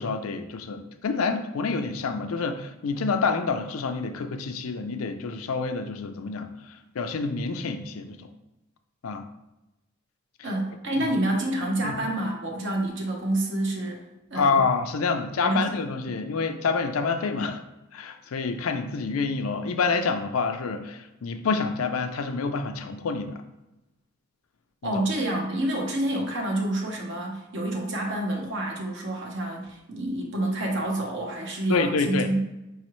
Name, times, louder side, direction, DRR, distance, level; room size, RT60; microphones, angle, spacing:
voice 1, 0.0-8.3 9.0-9.2 11.0-11.1 11.8-12.0 14.3-17.6 17.9-23.3 24.8-25.0 31.7-32.3, left 4 dB, 90° left, 7 dB, 0.5 m, -27 dB
voice 2, 10.4-14.0 14.3-14.6 15.4-15.7 24.8-32.4, right 1 dB, 60° right, 1 dB, 0.9 m, -28 dB
4.8 x 3.1 x 3.1 m, 0.97 s
head